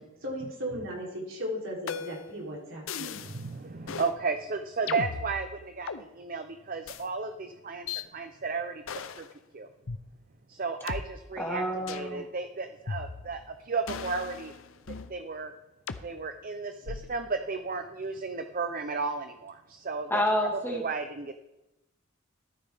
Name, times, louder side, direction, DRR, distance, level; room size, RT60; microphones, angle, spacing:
voice 1, 0.2-3.2 4.8-4.9, equal, 65° right, -3 dB, 3.4 m, -36 dB
sound 1, 1.9-2.3 2.9-3.4 3.9-4.1 4.9-6.0 6.9-7.0 7.9-8.0 8.9-9.3 9.9-10.0 10.9-11.0 11.9-12.1 12.9-13.4 13.9-15.1 15.9-16.1 16.9-17.2, left 5 dB, 70° left, 0.6 m, -37 dB
voice 2, 3.2-7.9 8.1-8.8 9.2-9.3 9.5-9.7 10.5-14.5 15.1-15.5 16.0-20.2 20.7-21.4, right 4 dB, 40° right, 8 dB, 0.6 m, -34 dB
voice 3, 11.4-12.2 20.1-20.8, equal, 10° left, 0 dB, 1.8 m, -28 dB
14.0 x 12.5 x 3.5 m, 0.96 s
head